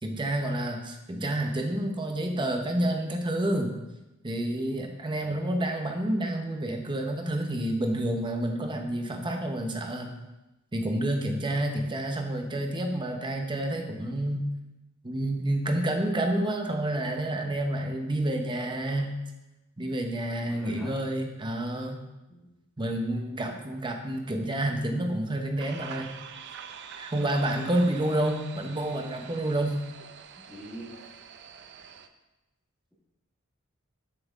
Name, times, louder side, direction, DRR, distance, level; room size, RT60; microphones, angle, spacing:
voice 1, 0.0-3.8 4.2-10.1 10.7-14.5 15.0-19.2 19.8-22.0 22.8-26.1 27.0-29.7, right 1 dB, 20° right, 3 dB, 0.8 m, -29 dB
voice 2, 20.4-21.0 22.3-22.5 23.3-23.5 30.4-31.1, equal, ahead, -5 dB, 1.5 m, -44 dB
sound 1, 25.6-32.1, right 7 dB, 55° right, 0.5 m, -45 dB
7.4 x 6.0 x 3.6 m, 1.0 s
head